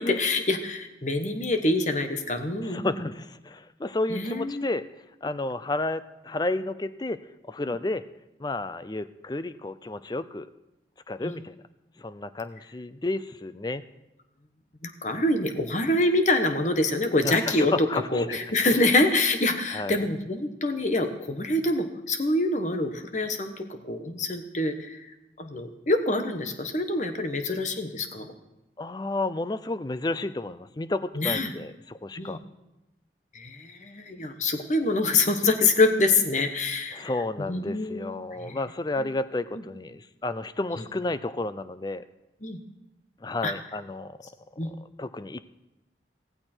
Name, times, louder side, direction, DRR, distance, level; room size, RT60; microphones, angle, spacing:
voice 1, 0.1-2.9 4.1-4.7 7.7-7.8 11.2-11.3 14.8-17.7 18.1-25.0 25.4-28.3 31.2-31.5 32.2-32.4 33.3-37.1 37.5-38.1 38.4-38.6 42.4-42.6 43.4-43.5 44.6-44.7, left 2 dB, 40° left, 7 dB, 1.2 m, -25 dB
voice 2, 2.6-4.9 5.2-7.2 7.5-8.0 8.4-10.5 11.1-11.6 12.0-13.8 17.2-18.4 18.7-18.9 19.7-20.0 28.8-32.4 36.9-42.0 43.2-44.2 44.6-45.4, left 2 dB, 20° left, 14 dB, 0.4 m, -31 dB
16.0 x 15.5 x 4.5 m, 0.97 s
head